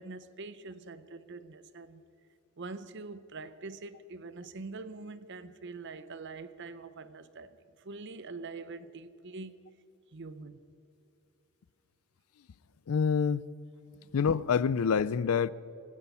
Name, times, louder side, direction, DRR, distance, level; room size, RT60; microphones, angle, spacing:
voice 1, 0.0-2.0 2.6-9.6 10.1-10.6 14.0-14.1, right 3 dB, 55° right, 0.7 m, -44 dB
voice 2, 12.9-13.5 14.1-15.5, left 6 dB, 80° left, 0.4 m, -26 dB
24.5 x 9.9 x 5.5 m
head